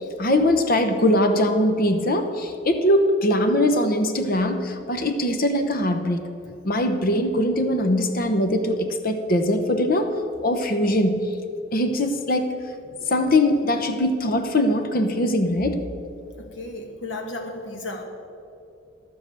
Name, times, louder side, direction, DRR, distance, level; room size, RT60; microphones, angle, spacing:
voice 1, 0.2-6.2 6.6-10.2 10.4-11.3 11.7-12.5 13.1-15.8, left 1 dB, 45° left, 7 dB, 0.9 m, -21 dB
voice 2, 16.4-18.0, left 2 dB, 65° left, 2 dB, 1.7 m, -34 dB
11.5 x 7.5 x 7.8 m, 2.6 s
head